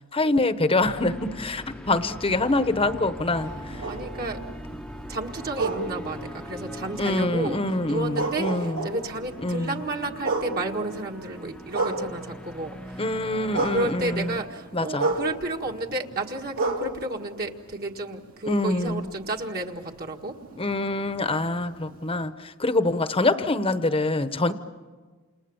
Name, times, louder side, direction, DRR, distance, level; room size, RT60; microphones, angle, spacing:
voice 1, 0.1-3.8 7.0-8.9 9.4-9.8 13.0-14.4 14.7-15.1 18.4-19.1 20.6-24.5, left 2 dB, 25° left, 11 dB, 1.0 m, -25 dB
sound 1, 0.8-14.5, equal, 5° left, 0.9 m, -41 dB
sound 2, 3.4-12.7 13.0-18.2 18.7-22.3, right 2 dB, 70° right, 2.9 m, -33 dB
voice 2, 3.9-4.4 5.1-7.6 7.8-13.0 13.7-20.3, right 2 dB, 45° right, 1 dB, 1.8 m, -32 dB
29.0 x 28.5 x 7.2 m, 1.4 s
head